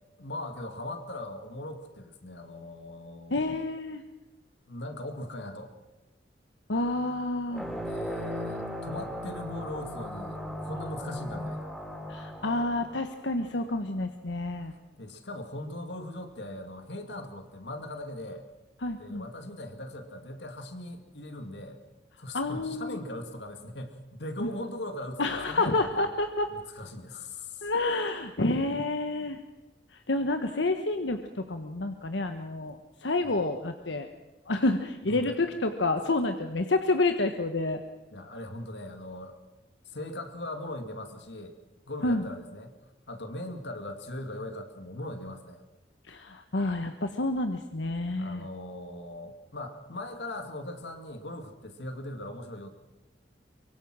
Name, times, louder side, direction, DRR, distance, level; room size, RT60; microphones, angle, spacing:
voice 1, 0.2-3.6 4.7-5.7 7.7-11.7 15.0-18.4 19.0-21.8 22.2-26.1 26.5-27.7 33.2-33.4 35.1-35.3 38.1-39.4 39.9-41.6 41.9-42.8 43.1-45.6 48.1-52.7, left 1 dB, 70° left, 7 dB, 2.3 m, -40 dB
voice 2, 3.3-4.0 6.7-7.6 12.1-14.7 18.8-19.2 22.3-23.0 24.4-24.5 25.2-26.5 27.6-29.4 30.1-34.1 34.5-37.8 42.0-42.2 46.1-48.4, left 2 dB, 90° left, 7 dB, 1.2 m, -29 dB
sound 1, 7.5-13.7, equal, ahead, 4.3 m, -37 dB
24.0 x 23.0 x 6.2 m, 1.0 s
head